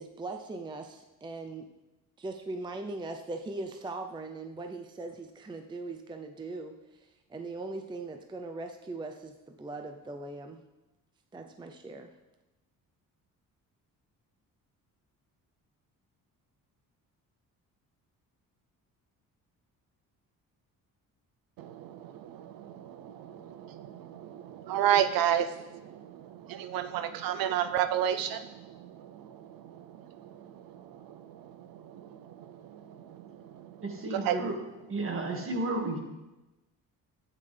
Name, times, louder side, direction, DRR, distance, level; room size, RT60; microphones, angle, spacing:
voice 1, 0.0-1.7 2.2-10.6 11.3-12.1, right 2 dB, 15° right, 5 dB, 0.5 m, -40 dB
voice 2, 21.6-34.4, right 10 dB, 80° right, 10 dB, 0.6 m, -33 dB
voice 3, 33.8-34.6 34.9-36.0, right 2 dB, 40° right, 2 dB, 1.9 m, -32 dB
13.5 x 8.7 x 3.4 m, 1.0 s
cardioid pair, 125°, 34 cm